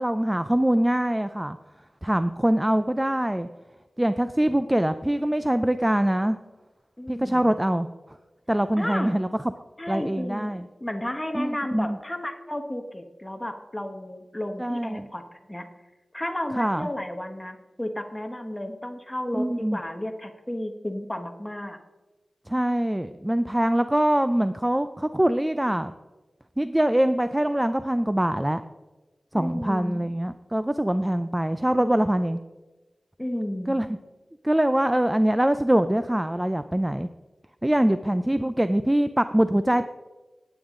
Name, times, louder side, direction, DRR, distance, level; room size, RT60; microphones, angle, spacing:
voice 1, 0.0-1.6 2.0-3.5 4.0-6.4 7.1-8.2 8.5-9.3 9.9-10.6 11.3-12.0 14.6-15.1 16.6-16.9 19.3-19.8 22.5-25.9 26.6-28.6 29.3-32.4 33.7-34.0 34.4-37.1 37.6-39.9, right 1 dB, 10° right, 11 dB, 0.4 m, -23 dB
voice 2, 7.0-7.6 8.8-9.3 9.8-10.5 10.8-15.7 16.1-21.8 29.3-30.1 33.2-33.8, left 1 dB, 15° left, 5 dB, 1.2 m, -33 dB
18.0 x 9.0 x 3.7 m, 1.2 s
wide cardioid pair, 75°, 0 cm